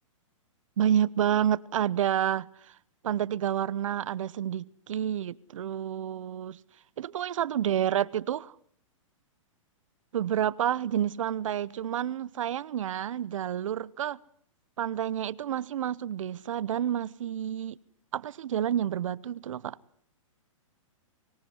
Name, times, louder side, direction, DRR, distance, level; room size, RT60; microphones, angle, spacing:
voice 1, 0.8-2.5 3.0-6.6 7.0-8.5 10.1-14.2 14.8-17.8 18.1-19.8, right 10 dB, 70° right, 1.0 m, -29 dB
25.0 x 18.0 x 9.6 m
hypercardioid pair, 135°, 17 cm